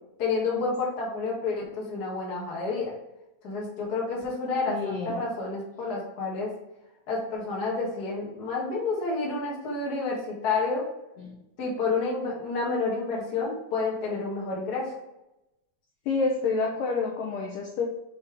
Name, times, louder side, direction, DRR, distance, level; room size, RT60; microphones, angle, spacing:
voice 1, 0.2-2.9 3.4-6.5 7.1-10.8 11.6-14.9, left 3 dB, 65° left, -3 dB, 0.9 m, -29 dB
voice 2, 4.7-5.2 11.2-11.3 16.1-17.9, left 4 dB, 85° left, 0 dB, 1.9 m, -28 dB
6.7 x 4.1 x 3.4 m, 0.92 s
omnidirectional pair, 4.8 m